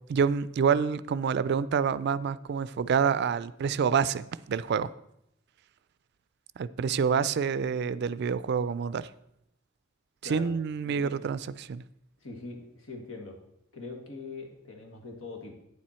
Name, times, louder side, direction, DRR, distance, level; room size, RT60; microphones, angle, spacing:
voice 1, 0.1-4.9 6.6-9.1 10.2-11.8, right 6 dB, 55° right, 16 dB, 0.3 m, -27 dB
voice 2, 12.2-13.4 13.7-15.5, left 3 dB, 90° left, 2 dB, 1.8 m, -42 dB
9.1 x 7.5 x 4.3 m, 0.79 s
head